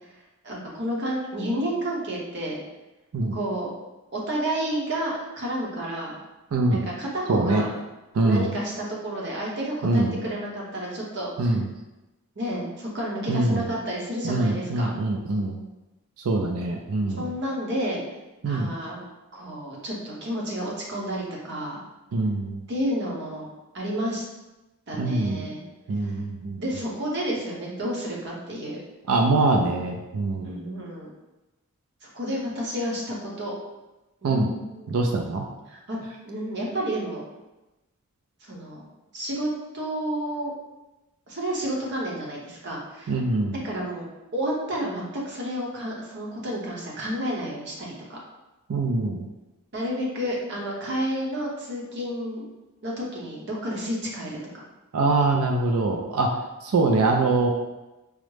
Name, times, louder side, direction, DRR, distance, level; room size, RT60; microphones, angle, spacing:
voice 1, 0.4-2.6 3.3-3.7 4.1-6.1 6.7-7.7 8.2-11.6 12.4-14.9 17.2-18.0 18.4-19.0 19.3-21.8 22.7-23.5 23.7-24.2 24.9-25.6 26.0-26.1 26.6-28.8 30.4-31.1 32.0-33.5 34.2-35.1 35.7-36.0 36.2-37.2 38.4-38.9 39.1-39.5 39.7-40.5 41.3-43.2 43.6-44.1 44.3-48.2 49.7-52.5 52.8-54.4, equal, 50° right, -3 dB, 0.9 m, -30 dB
voice 2, 6.5-6.9 7.3-7.6 8.1-8.5 9.8-10.2 11.4-11.7 13.3-13.6 14.2-15.6 16.3-17.2 18.4-18.7 22.1-22.6 25.0-25.5 25.9-26.6 29.1-30.6 34.2-34.5 34.9-35.4 43.1-43.5 48.7-49.2 54.9-56.3 56.6-57.5, right 2 dB, 70° right, 2 dB, 0.4 m, -23 dB
4.8 x 2.1 x 3.2 m, 1.0 s
head